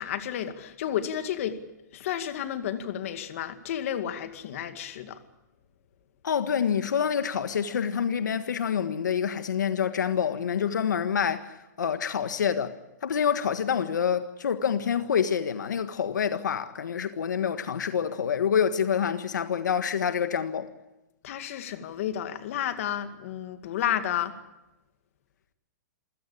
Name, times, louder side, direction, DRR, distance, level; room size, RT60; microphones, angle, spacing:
voice 1, 0.0-1.6 1.9-5.2 21.2-24.3, left 10 dB, 50° left, 2.2 m, -31 dB
voice 2, 6.2-12.7 13.0-20.7, left 7 dB, 85° left, 1.6 m, -27 dB
27.0 x 16.5 x 8.6 m
hypercardioid pair, 155°, 10 cm